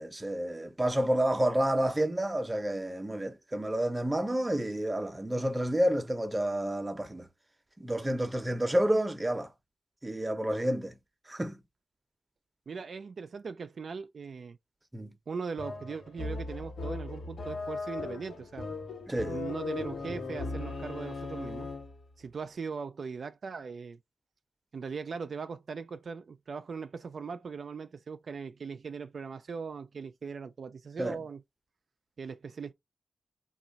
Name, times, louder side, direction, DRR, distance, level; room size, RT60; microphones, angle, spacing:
voice 1, 0.0-7.3 7.8-9.5 10.0-11.0 11.3-11.6 14.9-15.1 19.1-19.4 31.0-31.2, right 1 dB, 20° right, 0.7 m, -29 dB
voice 2, 12.7-14.6 15.3-18.7 19.3-21.7 22.2-24.0 24.7-31.4 32.2-32.7, right 5 dB, 65° right, 0.3 m, -39 dB
sound 1, 15.6-22.0, left 3 dB, 70° left, 1.0 m, -38 dB
2.9 x 2.3 x 3.9 m
cardioid pair, 65°, 0 cm